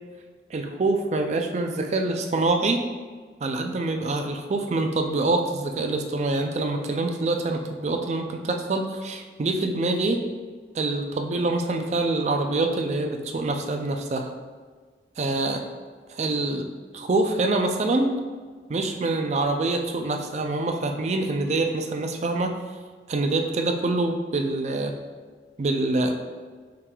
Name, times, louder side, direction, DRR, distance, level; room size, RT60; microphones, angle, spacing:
voice 1, 0.5-2.8 3.4-10.2 10.7-14.3 15.2-15.6 16.1-16.7 16.9-18.2 18.7-22.6 23.1-24.9 25.6-26.1, right 2 dB, 40° right, 5 dB, 0.4 m, -25 dB
5.7 x 3.3 x 2.3 m, 1.5 s
head